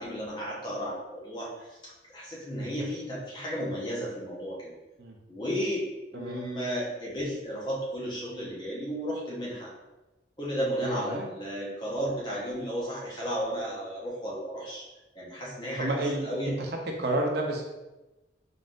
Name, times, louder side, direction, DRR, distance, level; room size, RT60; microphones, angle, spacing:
voice 1, 0.0-4.7 5.3-9.7 10.4-14.8 15.1-16.6, equal, 25° left, -6 dB, 1.1 m, -33 dB
voice 2, 10.8-11.3 15.8-16.5 17.0-17.6, right 1 dB, 60° right, 1 dB, 0.7 m, -30 dB
3.9 x 3.8 x 2.5 m, 1.1 s
head